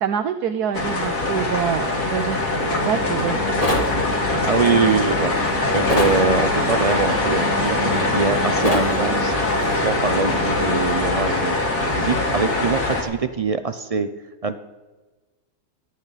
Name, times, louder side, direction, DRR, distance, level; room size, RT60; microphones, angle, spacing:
voice 1, 0.0-2.4 2.7-3.4, right 8 dB, 85° right, 7 dB, 1.4 m, -25 dB
sound 1, 0.7-13.0, left 2 dB, 85° left, 3.2 m, -22 dB
sound 2, 2.5-10.8, right 1 dB, 60° left, 6.1 m, -31 dB
sound 3, 3.6-3.9 5.9-6.2 8.6-8.9, left 1 dB, 25° left, 2.1 m, -22 dB
voice 2, 4.4-5.3 5.7-9.3 9.7-11.6 11.9-14.1 14.4-14.6, right 4 dB, 50° right, 10 dB, 0.4 m, -23 dB
26.0 x 11.0 x 4.1 m, 1.2 s
omnidirectional pair, 1.6 m